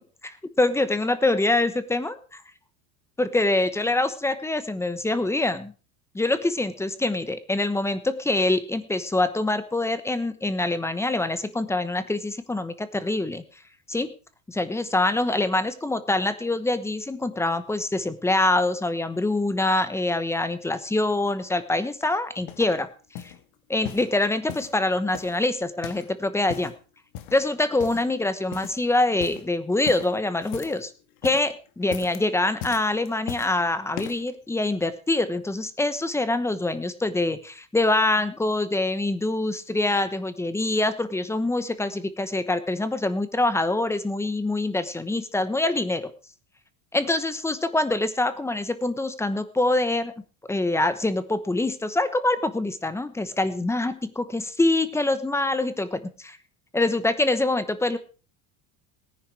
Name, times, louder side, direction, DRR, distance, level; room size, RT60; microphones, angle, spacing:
voice 1, 0.2-2.1 3.2-5.7 6.1-13.4 13.9-14.1 14.5-22.9 23.2-23.3 23.7-26.7 27.3-30.9 31.2-46.1 46.9-50.1 50.5-56.4 56.7-58.0, left 2 dB, 5° left, 13 dB, 1.0 m, -25 dB
sound 1, 22.0-22.8 23.2-23.4 23.8-24.8 25.1-26.1 26.4-26.8 27.1-27.5 27.8-28.2 28.5-28.9 29.1-29.5 29.9-30.9 31.1-31.5 31.8-32.2 32.6-33.6 33.9-34.3 35.0-35.1, left 11 dB, 60° left, 1.8 m, -38 dB
18.0 x 10.5 x 4.8 m, 0.37 s
cardioid pair, 145°, 40 cm